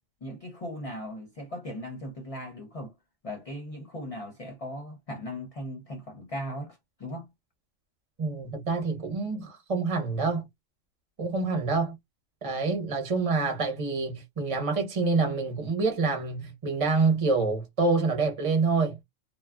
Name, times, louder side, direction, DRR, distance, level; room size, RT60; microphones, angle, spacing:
voice 1, 0.2-2.9 3.2-7.3, equal, 40° left, 0.5 m, -38 dB
voice 2, 8.2-10.5 11.2-12.0 12.4-19.0, right 4 dB, 30° right, 0.9 m, -27 dB
2.9 x 2.3 x 2.3 m
omnidirectional pair, 1.4 m